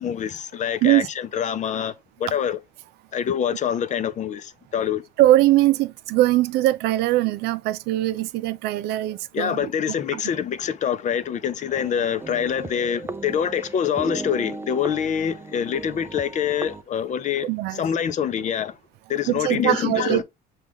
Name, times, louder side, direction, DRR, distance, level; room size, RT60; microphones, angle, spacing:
voice 1, 0.0-2.6 3.1-5.0 9.3-18.8 19.1-20.2, left 8 dB, 45° left, 0.6 m, -25 dB
voice 2, 5.2-9.7 10.1-10.2 17.4-17.8 19.3-20.2, right 15 dB, 80° right, 0.4 m, -21 dB
sound 1, 11.7-16.8, right 3 dB, 15° right, 0.4 m, -36 dB
6.1 x 2.4 x 3.5 m
cardioid pair, 110°, 17 cm